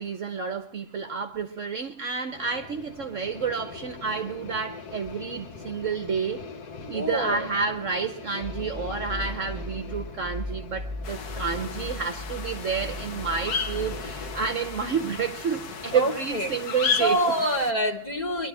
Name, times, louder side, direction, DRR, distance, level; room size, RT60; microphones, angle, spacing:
voice 1, 0.0-6.5 6.9-17.3, right 6 dB, 55° right, 1.0 m, -30 dB
sound 1, 2.3-17.1, left 5 dB, 65° left, 1.5 m, -42 dB
voice 2, 6.9-7.4 15.9-16.5 17.0-18.5, right 1 dB, 30° left, 1.2 m, -26 dB
sound 2, 8.4-15.5, left 1 dB, 20° right, 1.0 m, -38 dB
sound 3, 11.0-17.7, left 6 dB, 85° left, 1.7 m, -34 dB
25.0 x 11.5 x 4.8 m
omnidirectional pair, 1.9 m